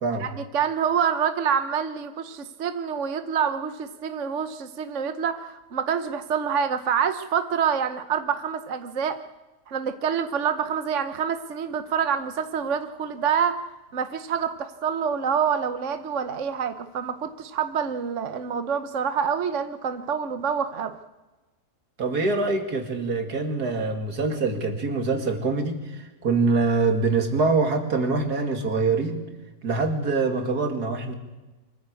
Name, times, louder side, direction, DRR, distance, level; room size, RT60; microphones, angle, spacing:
voice 1, 0.2-9.2 9.7-13.6 13.9-21.0, right 7 dB, 55° right, 10 dB, 1.2 m, -27 dB
voice 2, 22.0-29.2 29.6-31.1, right 3 dB, 75° right, 5 dB, 2.8 m, -24 dB
24.5 x 14.5 x 8.3 m, 1.1 s
omnidirectional pair, 1.7 m